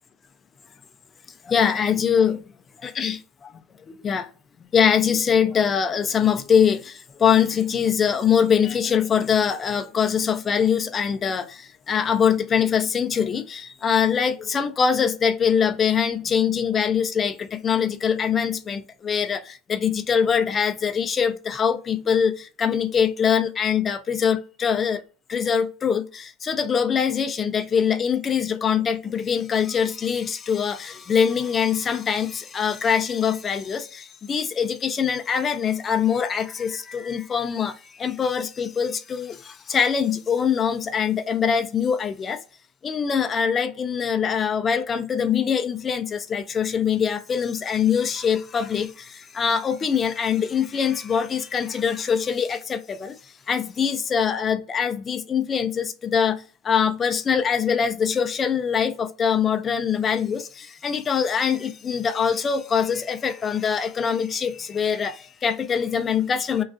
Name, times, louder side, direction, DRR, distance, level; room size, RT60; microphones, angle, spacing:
voice 1, 1.5-2.4 2.8-3.2 4.0-4.3 4.7-25.0 25.3-42.4 42.8-53.1 53.5-56.4 56.6-66.6, left 7 dB, 30° left, 0.3 m, -23 dB
2.4 x 2.3 x 2.4 m
supercardioid pair, 115°, 0 cm